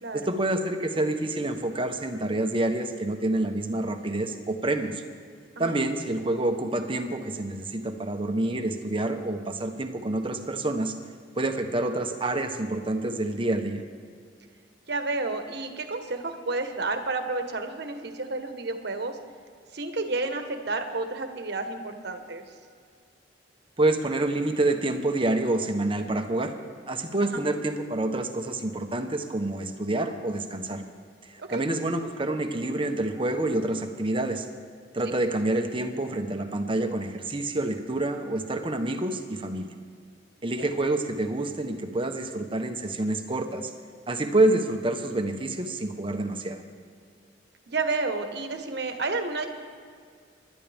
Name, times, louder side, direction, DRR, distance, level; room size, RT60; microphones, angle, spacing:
voice 1, 0.1-5.0 5.6-10.9 11.4-13.8 23.8-26.5 26.9-30.8 31.2-34.5 34.9-39.7 40.4-43.7 44.1-46.6, right 2 dB, 30° right, 5 dB, 1.1 m, -27 dB
voice 2, 14.9-19.2 19.7-22.4 27.2-27.4 31.4-31.6 40.5-40.6 47.7-49.5, right 3 dB, 60° right, 6 dB, 1.4 m, -31 dB
25.5 x 12.0 x 3.6 m, 2.2 s
head